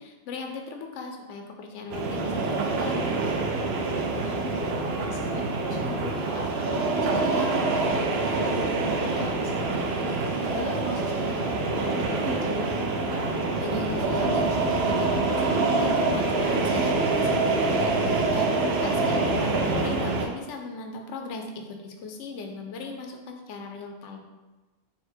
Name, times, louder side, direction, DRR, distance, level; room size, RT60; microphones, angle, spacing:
voice 1, 0.0-3.2 13.6-24.2, left 3 dB, 90° left, 3 dB, 0.9 m, -38 dB
sound 1, 1.9-20.3, right 3 dB, 70° right, 0.8 m, -26 dB
voice 2, 3.9-10.1 10.5-13.3 18.7-19.4, left 2 dB, 20° left, -2 dB, 0.5 m, -38 dB
4.1 x 2.1 x 4.3 m, 1.2 s
omnidirectional pair, 1.2 m